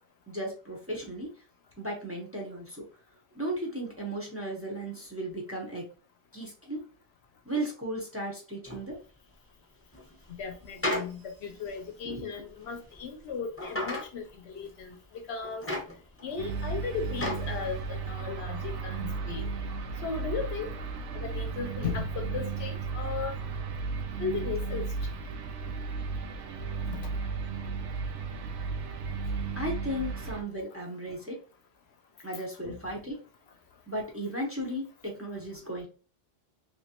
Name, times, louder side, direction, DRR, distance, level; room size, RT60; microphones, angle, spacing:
voice 1, 0.3-1.3 1.8-2.8 3.3-5.9 6.3-6.8 7.4-9.0 12.0-12.3 29.6-31.4 32.2-33.2 33.9-35.9, right 1 dB, 15° right, 0.8 m, -35 dB
sound 1, 8.6-8.8 9.9-11.1 11.6-11.8 12.7-13.0 13.6-14.1 14.7-14.8 15.4-16.4 16.7-17.5 18.0-18.1, left 1 dB, 10° left, 1.0 m, -33 dB
voice 2, 10.4-15.0 15.3-15.6 16.2-19.5 20.0-20.7 21.1-23.4 24.2-24.8 26.9-27.1 32.6-32.8, left 5 dB, 70° left, 0.8 m, -36 dB
sound 2, 16.4-30.4, right 4 dB, 75° right, 1.0 m, -34 dB
3.1 x 3.1 x 2.9 m
omnidirectional pair, 1.2 m